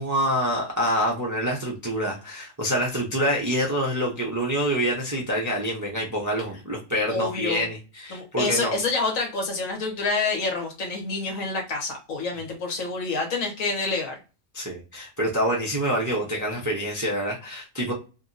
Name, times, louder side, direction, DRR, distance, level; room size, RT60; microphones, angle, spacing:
voice 1, 0.0-8.8 14.5-17.9, equal, 30° right, -2 dB, 0.3 m, -26 dB
voice 2, 7.1-7.7 8.1-14.2, left 3 dB, 65° left, 1 dB, 1.4 m, -27 dB
2.8 x 2.7 x 2.6 m, 0.32 s
omnidirectional pair, 1.6 m